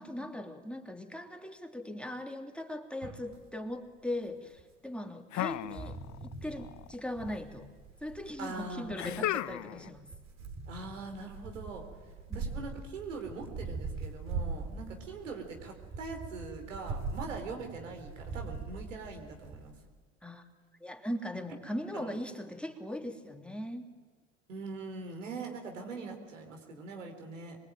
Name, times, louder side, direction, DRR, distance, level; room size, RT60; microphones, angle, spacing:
voice 1, 0.0-7.7 8.0-10.1 12.3-12.6 20.2-20.4 20.8-23.9, left 1 dB, 5° left, 4 dB, 3.0 m, -39 dB
sound 1, 3.0-3.4 4.6-4.7 5.5-19.7, right 4 dB, 45° right, 4.3 m, -42 dB
sound 2, 5.3-6.3 6.6-7.3 9.0-9.9, left 14 dB, 50° left, 0.9 m, -35 dB
voice 2, 8.4-9.3 10.7-11.8 12.3-19.7 21.9-22.2 24.5-27.6, right 3 dB, 90° right, 3 dB, 4.1 m, -42 dB
25.5 x 23.0 x 9.2 m, 1.4 s
hypercardioid pair, 65°, 37 cm